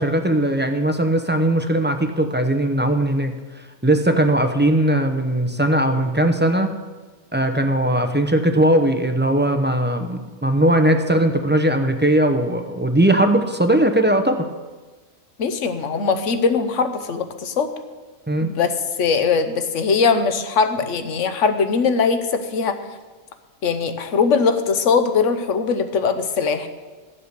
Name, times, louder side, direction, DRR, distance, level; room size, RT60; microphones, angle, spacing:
voice 1, 0.0-3.3 3.8-6.7 7.3-14.4 18.3-18.5, right 1 dB, 10° right, 6 dB, 0.5 m, -19 dB
voice 2, 15.4-17.7 18.4-18.7 19.0-22.8 23.6-26.7, left 5 dB, 65° left, 9 dB, 1.2 m, -20 dB
13.5 x 7.6 x 6.8 m, 1.3 s
omnidirectional pair, 1.4 m